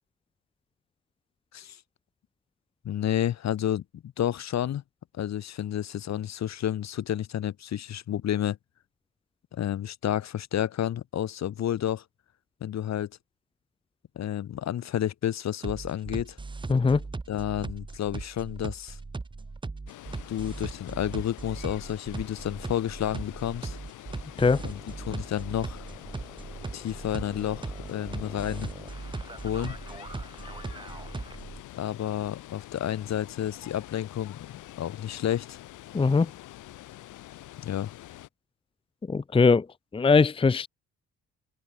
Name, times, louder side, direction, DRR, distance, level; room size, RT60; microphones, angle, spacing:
voice 1, 2.9-4.8 5.1-8.6 9.5-12.0 12.6-13.1 14.2-16.4 17.3-19.0 20.3-23.8 24.6-25.8 26.7-28.7 29.4-29.8 31.8-35.6 37.6-37.9, left 11 dB, 65° left, 1.8 m, -30 dB
sound 1, 15.6-31.6, right 3 dB, 15° right, 0.9 m, -38 dB
voice 2, 16.7-17.0 24.4-24.6 35.9-36.3 39.1-39.7 39.9-40.7, left 4 dB, 20° left, 0.6 m, -21 dB
Water, 19.9-38.3, left 15 dB, 90° left, 4.9 m, -46 dB
open air
cardioid pair, 90°, 30 cm